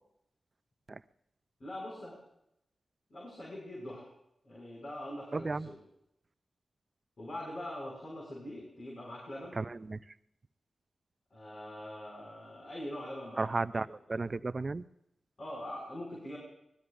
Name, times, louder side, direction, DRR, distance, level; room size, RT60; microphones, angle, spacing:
voice 1, 1.6-2.2 3.1-4.1 4.4-5.8 7.2-9.6 11.3-14.2 15.4-16.4, left 1 dB, 60° left, -5 dB, 6.4 m, -43 dB
voice 2, 5.3-5.7 9.6-10.0 13.4-14.8, right 3 dB, 45° right, 15 dB, 0.5 m, -34 dB
25.0 x 21.0 x 2.7 m, 0.81 s
cardioid pair, 45°, 0 cm